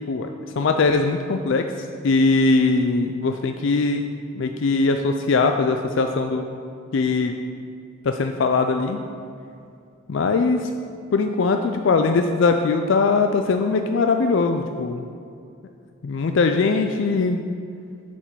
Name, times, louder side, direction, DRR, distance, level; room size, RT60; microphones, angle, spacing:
voice 1, 0.6-1.6 2.0-4.1 4.4-6.5 6.9-7.3 8.0-9.0 10.1-10.7 11.1-15.0 16.0-17.4, left 4 dB, 60° left, 6 dB, 0.4 m, -21 dB
6.9 x 5.1 x 6.8 m, 2.5 s
head